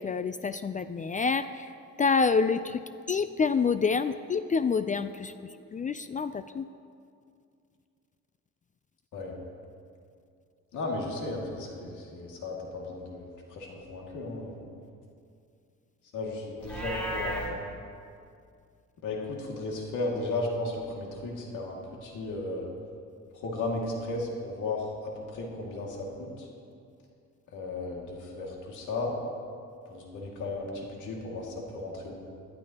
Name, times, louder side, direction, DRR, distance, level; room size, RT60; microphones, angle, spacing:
voice 1, 0.0-1.7 2.0-6.7, left 5 dB, 25° left, 12 dB, 0.4 m, -28 dB
voice 2, 10.7-14.6 16.1-17.4 19.0-22.7 23.3-26.5 27.5-29.2 29.9-32.2, left 2 dB, 80° left, -1 dB, 2.2 m, -35 dB
Livestock farm animals working animals, 16.6-17.5, right 1 dB, 5° left, 3.2 m, -34 dB
18.5 x 12.0 x 2.9 m, 2.4 s
cardioid pair, 90°, 30 cm